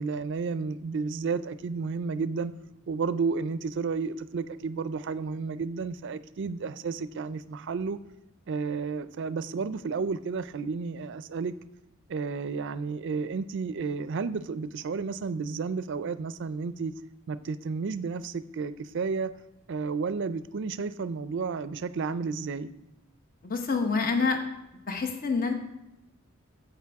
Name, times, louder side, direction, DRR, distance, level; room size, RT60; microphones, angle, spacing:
voice 1, 0.0-2.5 2.9-8.0 8.5-11.5 12.1-16.9 17.3-19.3 19.7-22.7, right 4 dB, 60° right, 14 dB, 0.4 m, -32 dB
voice 2, 23.4-24.4 24.9-25.5, left 4 dB, 45° left, 4 dB, 1.0 m, -27 dB
12.0 x 7.9 x 3.5 m, 0.90 s
head